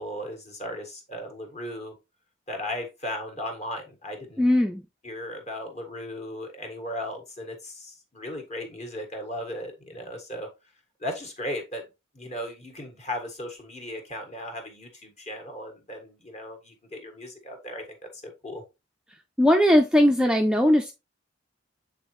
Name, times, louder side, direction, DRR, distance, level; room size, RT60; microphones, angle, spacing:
voice 1, 0.0-1.9 2.5-4.5 5.0-10.5 11.0-11.8 12.1-18.6, left 1 dB, 35° left, 3 dB, 1.5 m, -36 dB
voice 2, 4.4-4.8 19.4-20.9, left 1 dB, 5° right, 3 dB, 0.4 m, -19 dB
8.0 x 3.8 x 3.1 m, 0.26 s
head